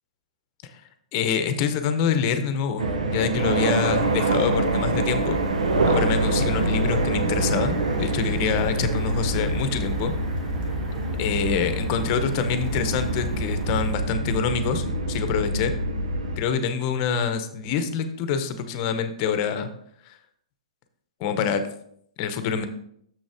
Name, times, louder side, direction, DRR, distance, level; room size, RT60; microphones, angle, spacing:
voice 1, 1.1-5.4 5.8-10.1 11.2-15.7 16.4-19.7 20.1-20.2 21.2-21.6 22.2-22.7, left 6 dB, 40° left, 9 dB, 0.9 m, -26 dB
sound 1, 2.8-16.4, right 2 dB, 75° right, 1.0 m, -25 dB
sound 2, 3.3-13.9, equal, 5° right, 2.6 m, -37 dB
Dishes pots and pans, 6.6-7.6 7.9-13.7, right 4 dB, 35° right, 1.4 m, -46 dB
6.9 x 6.3 x 3.5 m, 0.68 s
hypercardioid pair, 125°, 4 cm